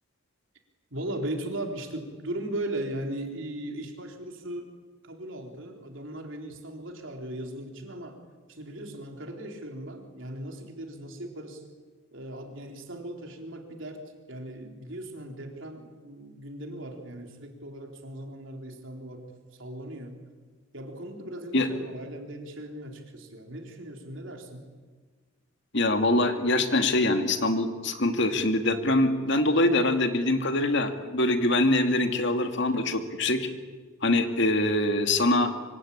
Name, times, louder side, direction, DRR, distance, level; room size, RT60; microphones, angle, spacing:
voice 1, 0.9-4.7 5.0-8.2 8.5-11.6 12.1-19.3 19.5-20.2 20.7-24.7, right 1 dB, 60° right, 3 dB, 4.2 m, -38 dB
voice 2, 25.7-33.5 34.0-35.5, left 2 dB, 55° left, 6 dB, 2.4 m, -24 dB
25.5 x 25.0 x 8.7 m, 1.4 s
head